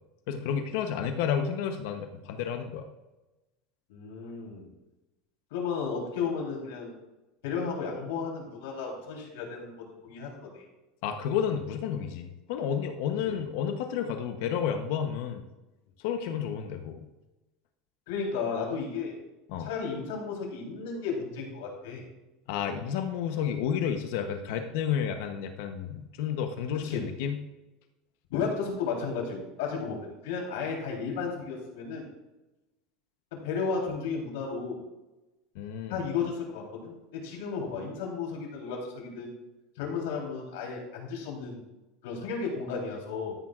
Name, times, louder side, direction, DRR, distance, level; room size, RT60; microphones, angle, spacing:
voice 1, 0.3-2.8 11.0-15.4 16.0-17.0 19.5-19.7 22.5-27.4 35.5-36.0, left 8 dB, 60° left, 6 dB, 0.9 m, -31 dB
voice 2, 3.9-4.7 5.5-6.9 7.4-10.6 13.3-13.4 18.1-19.2 19.6-22.0 26.8-27.0 28.3-32.1 33.3-34.8 35.9-39.3 39.8-41.6 42.0-43.4, left 5 dB, 85° left, -1 dB, 3.6 m, -33 dB
13.0 x 10.5 x 2.5 m, 1.0 s
cardioid pair, 180°, 0 cm